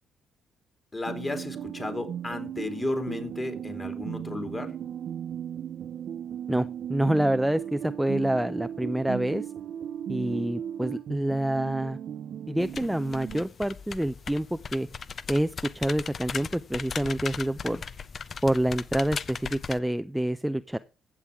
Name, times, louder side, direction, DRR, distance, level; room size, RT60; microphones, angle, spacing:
voice 1, 0.9-4.7, left 2 dB, 25° left, 7 dB, 3.1 m, -33 dB
sound 1, 1.1-13.4, right 9 dB, 65° right, 0.6 m, -36 dB
voice 2, 6.5-9.5 10.1-12.0 12.5-14.9 15.3-17.8 18.4-20.8, right 1 dB, 5° right, 11 dB, 0.5 m, -27 dB
sound 2, 12.6-19.8, left 6 dB, 45° left, 0.7 m, -38 dB
15.0 x 7.4 x 3.5 m, 0.31 s
cardioid pair, 90°, 0 cm